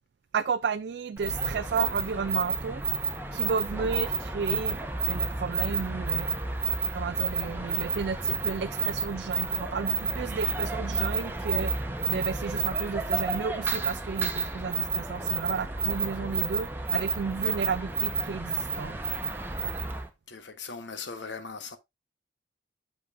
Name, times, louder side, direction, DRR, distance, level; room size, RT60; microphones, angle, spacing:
voice 1, 0.3-2.8 3.3-4.8 5.1-6.3 6.9-11.7 12.1-19.0, right 5 dB, 60° right, 0.3 m, -32 dB
sound 1, 1.2-20.1, right 4 dB, 10° right, 1.1 m, -30 dB
voice 2, 20.3-21.8, left 5 dB, 75° left, 1.2 m, -39 dB
8.5 x 7.0 x 2.5 m
head